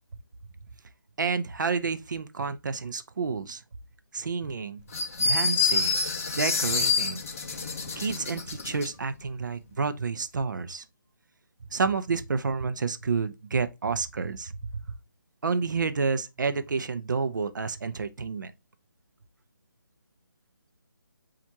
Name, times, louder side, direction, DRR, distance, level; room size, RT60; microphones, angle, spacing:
voice 1, 1.2-3.6 4.1-4.8 5.2-6.0 6.3-7.2 8.0-10.8 11.7-14.8 15.4-18.5, right 5 dB, 60° right, 0.5 m, -29 dB
sound 1, 4.9-8.9, left 4 dB, 40° left, 0.6 m, -27 dB
7.2 x 2.5 x 2.7 m
hypercardioid pair, 165°, 11 cm